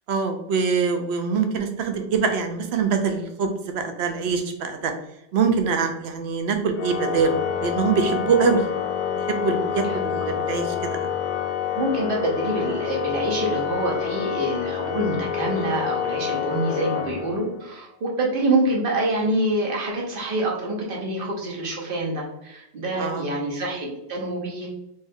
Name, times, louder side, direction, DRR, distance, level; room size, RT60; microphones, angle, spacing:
voice 1, 0.1-4.9 5.3-8.7 9.3-11.2 23.0-23.3, right 5 dB, 70° right, 6 dB, 0.8 m, -24 dB
Organ, 6.8-17.7, left 8 dB, 60° left, 0.8 m, -28 dB
voice 2, 11.7-24.7, right 1 dB, 50° right, -2 dB, 1.1 m, -26 dB
3.4 x 2.7 x 3.4 m, 0.83 s
omnidirectional pair, 1.2 m